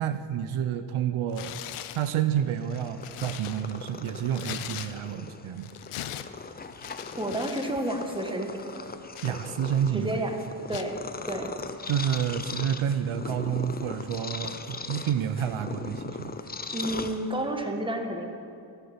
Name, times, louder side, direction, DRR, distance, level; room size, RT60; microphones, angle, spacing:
voice 1, 0.0-1.6 1.9-5.7 9.2-10.1 11.9-16.3, right 9 dB, 75° right, 10 dB, 0.7 m, -29 dB
Tearing, 1.3-2.1 2.6-5.3 5.6-7.7 8.0-8.2 8.7-9.9 10.7-11.0, left 11 dB, 80° left, 0.7 m, -40 dB
Purr, 2.5-17.7, left 4 dB, 20° left, 0.6 m, -39 dB
voice 2, 7.2-8.9 9.9-10.4 10.7-11.0 11.3-11.5 16.7-18.3, right 1 dB, 10° right, 4 dB, 1.4 m, -30 dB
14.5 x 7.1 x 7.3 m, 2.5 s
cardioid pair, 95°, 50 cm